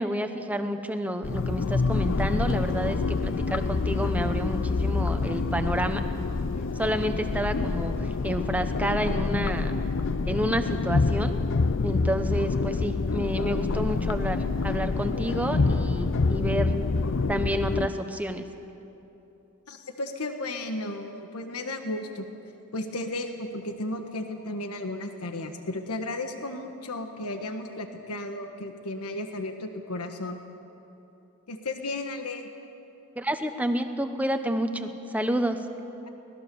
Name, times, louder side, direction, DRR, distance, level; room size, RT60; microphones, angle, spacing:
voice 1, 0.0-6.0 6.8-7.9 8.2-9.7 10.3-11.4 11.8-16.7 17.3-18.4 33.2-35.6, equal, 5° right, 7 dB, 1.1 m, -29 dB
sound 1, 1.2-17.9, left 3 dB, 60° left, 0.6 m, -27 dB
voice 2, 19.7-22.2 22.7-30.4 31.5-32.5, left 2 dB, 85° left, 5 dB, 1.5 m, -34 dB
25.0 x 19.0 x 7.0 m, 3.0 s
head